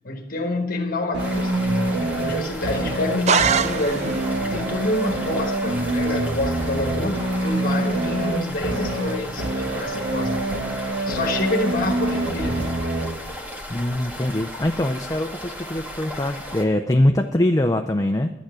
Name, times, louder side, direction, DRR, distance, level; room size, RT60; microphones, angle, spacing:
voice 1, 0.0-10.4 11.0-12.8, left 2 dB, 50° left, 3 dB, 1.4 m, -27 dB
sound 1, 1.1-13.1, right 2 dB, 80° right, 1.6 m, -26 dB
sound 2, 1.2-16.6, left 1 dB, 10° right, 1.6 m, -36 dB
sound 3, 3.3-4.3, right 7 dB, 35° right, 0.4 m, -22 dB
voice 2, 13.7-18.3, left 1 dB, 20° left, 5 dB, 0.5 m, -22 dB
11.5 x 9.2 x 6.1 m, 0.98 s
head